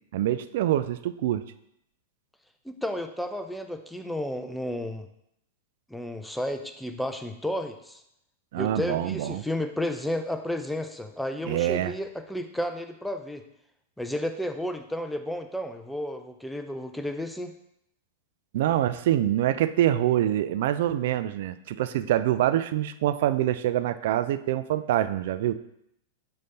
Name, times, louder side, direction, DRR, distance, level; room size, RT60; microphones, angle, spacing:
voice 1, 0.1-1.4 8.5-9.4 11.5-11.9 18.5-25.5, right 12 dB, 55° right, 13 dB, 0.3 m, -25 dB
voice 2, 2.6-5.1 5.9-8.0 8.5-13.4 14.0-17.6, left 1 dB, ahead, 6 dB, 0.6 m, -32 dB
6.2 x 4.0 x 4.2 m, 0.77 s
figure-of-eight pair, 95°, 0 cm